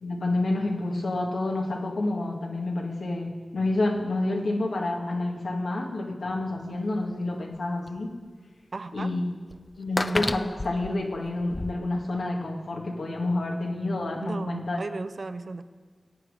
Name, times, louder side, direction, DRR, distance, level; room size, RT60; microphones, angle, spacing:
voice 1, 0.0-8.1 8.9-9.2 9.8-14.8, left 2 dB, 80° left, 1 dB, 1.8 m, -29 dB
sound 1, 6.6-6.7 7.5-7.6 7.9-8.0 9.0-9.1 9.5-11.7, left 2 dB, 35° left, 0.5 m, -31 dB
voice 2, 8.7-9.1 14.2-15.6, right 3 dB, 65° right, 10 dB, 0.7 m, -35 dB
20.5 x 8.6 x 5.0 m, 1.5 s
cardioid pair, 45°, 0 cm